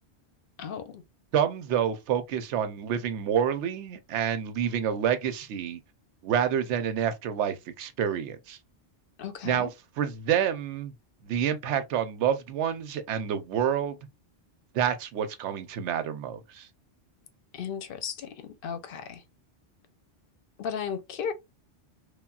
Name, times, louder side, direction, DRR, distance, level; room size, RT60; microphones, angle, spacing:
voice 1, 0.6-1.0 9.2-9.7 17.5-19.2 20.6-21.3, left 7 dB, 60° left, 0.7 m, -35 dB
voice 2, 1.3-5.8 6.2-8.6 9.4-9.7 10.0-10.9 11.2-14.0 14.7-16.7, right 9 dB, 85° right, 0.9 m, -28 dB
3.3 x 2.2 x 2.3 m
omnidirectional pair, 1.2 m